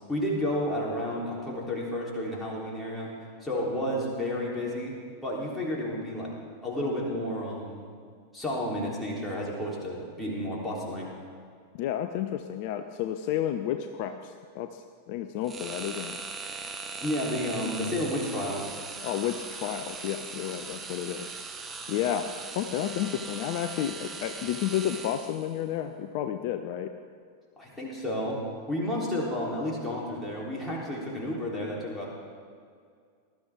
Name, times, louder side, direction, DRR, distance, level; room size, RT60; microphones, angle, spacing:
voice 1, 0.1-3.1 3.4-5.0 5.2-6.3 6.6-7.9 8.3-11.1 17.0-18.7 27.6-28.4 28.7-32.1, left 1 dB, 5° left, -5 dB, 3.7 m, -31 dB
voice 2, 11.7-16.2 19.0-21.3 21.9-26.9, left 10 dB, 45° left, 8 dB, 0.6 m, -31 dB
sound 1, 15.4-25.6, right 4 dB, 15° right, 1.0 m, -40 dB
19.0 x 12.5 x 3.7 m, 2.2 s
figure-of-eight pair, 90°, 0 cm